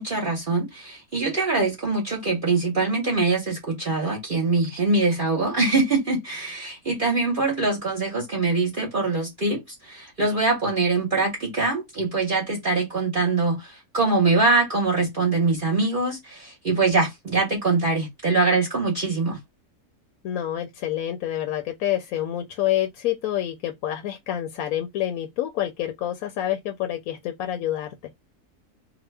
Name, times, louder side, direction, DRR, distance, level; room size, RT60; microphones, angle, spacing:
voice 1, 0.0-19.4, right 3 dB, 40° right, 0.9 m, -23 dB
voice 2, 20.2-27.9, left 12 dB, 75° left, 1.0 m, -27 dB
2.8 x 2.1 x 3.2 m
omnidirectional pair, 1.6 m